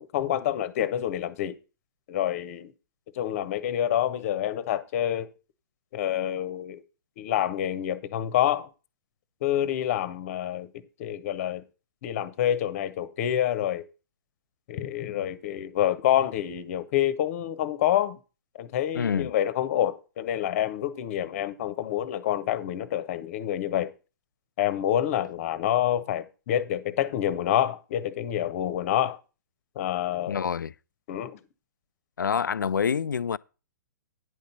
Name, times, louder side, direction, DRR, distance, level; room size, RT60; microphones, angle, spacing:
voice 1, 0.0-1.6 2.1-2.7 3.1-5.3 5.9-6.8 7.2-8.7 9.4-10.7 11.0-11.6 12.0-13.8 14.7-18.2 18.5-23.9 24.6-29.2 29.8-30.5 31.1-31.4, left 11 dB, 45° left, 1.0 m, -27 dB
voice 2, 18.9-19.3 30.3-30.7 32.2-33.4, left 7 dB, 75° left, 0.4 m, -27 dB
9.9 x 5.4 x 5.7 m
figure-of-eight pair, 120°, 10 cm